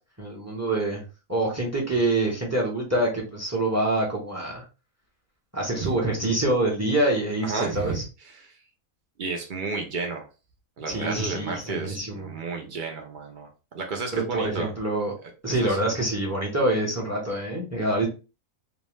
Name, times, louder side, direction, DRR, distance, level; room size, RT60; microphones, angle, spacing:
voice 1, 0.2-1.0 1.3-4.6 5.5-8.0 10.9-12.3 14.1-15.1 15.4-18.1, right 1 dB, 20° right, -2 dB, 0.5 m, -26 dB
voice 2, 7.4-8.5 9.2-10.2 10.8-13.5 13.7-14.7 15.6-15.8, right 4 dB, 75° right, 2 dB, 0.4 m, -32 dB
2.6 x 2.1 x 3.1 m, 0.31 s
omnidirectional pair, 1.5 m